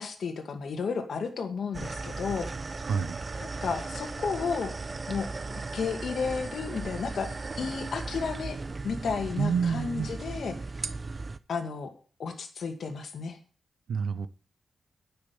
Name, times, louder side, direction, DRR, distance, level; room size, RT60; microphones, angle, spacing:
voice 1, 0.0-2.5 3.4-4.7 5.1-8.6 8.8-10.5 11.5-11.9 12.2-13.4, left 5 dB, 65° left, 3 dB, 2.2 m, -33 dB
sound 1, 1.7-11.4, right 3 dB, 35° right, 0.7 m, -37 dB
voice 2, 2.8-3.2 9.4-10.1 13.9-14.3, right 6 dB, 75° right, 14 dB, 0.8 m, -28 dB
10.0 x 6.8 x 7.2 m, 0.39 s
wide cardioid pair, 105°, 0 cm